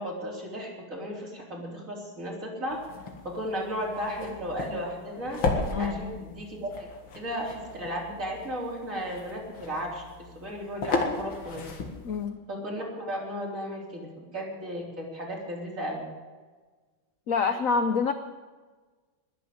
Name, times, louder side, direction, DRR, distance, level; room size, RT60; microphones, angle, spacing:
voice 1, 0.0-2.8 3.2-5.4 5.8-6.9 7.1-10.0 10.3-11.6 12.5-16.0, equal, 40° right, -3 dB, 4.4 m, -34 dB
sound 1, 2.7-12.3, left 3 dB, 75° left, 2.8 m, -35 dB
voice 2, 5.7-6.2 12.0-12.4 17.3-18.1, left 5 dB, 60° left, 9 dB, 0.9 m, -26 dB
21.0 x 7.8 x 8.0 m, 1.3 s
omnidirectional pair, 2.2 m